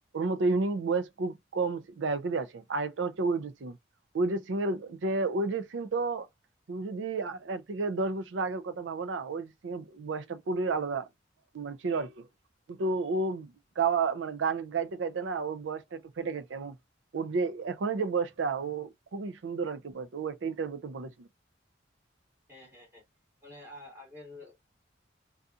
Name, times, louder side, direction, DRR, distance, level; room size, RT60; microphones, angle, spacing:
voice 1, 0.1-3.8 4.1-6.3 6.7-11.1 11.5-12.3 12.7-16.8 17.1-21.3, right 4 dB, 80° right, 0.5 m, -31 dB
voice 2, 22.5-23.0 23.4-24.5, left 1 dB, 10° right, 1.2 m, -48 dB
2.7 x 2.4 x 2.4 m
head